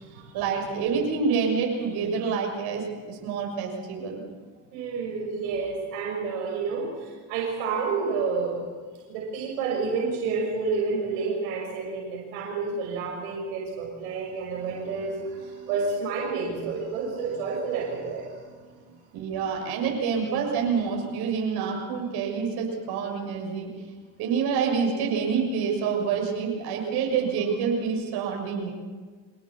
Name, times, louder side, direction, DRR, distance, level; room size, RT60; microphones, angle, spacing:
voice 1, 0.3-4.2 19.1-23.7 24.2-28.7, right 6 dB, 65° right, 0 dB, 6.6 m, -27 dB
voice 2, 4.7-8.6 9.1-19.0 19.7-19.8, right 4 dB, 85° right, -1 dB, 6.0 m, -30 dB
26.0 x 18.5 x 7.2 m, 1.5 s
supercardioid pair, 105°, 41 cm